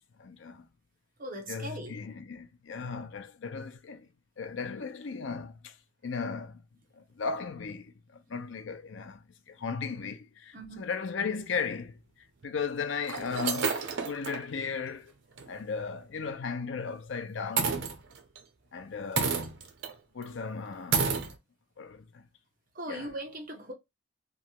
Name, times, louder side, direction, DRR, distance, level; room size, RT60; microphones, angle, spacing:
voice 1, 0.2-0.7 1.5-4.1 4.4-5.8 6.0-6.6 6.9-12.0 12.4-13.8 14.0-15.1 15.5-17.8 18.7-19.5 20.1-21.3 21.8-22.2 22.9-23.1, left 5 dB, 70° left, 0.5 m, -36 dB
voice 2, 1.2-2.0 8.2-8.3 10.5-10.9 12.4-12.5 22.7-23.7, right 1 dB, 45° right, 0.9 m, -40 dB
sound 1, 11.5-11.6 12.4-12.5 13.0-14.4 14.9-15.0 15.4-15.5 17.6-18.4 19.2-19.9 20.2-20.3 20.9-21.3, right 5 dB, 70° right, 0.7 m, -30 dB
3.0 x 2.4 x 2.8 m
head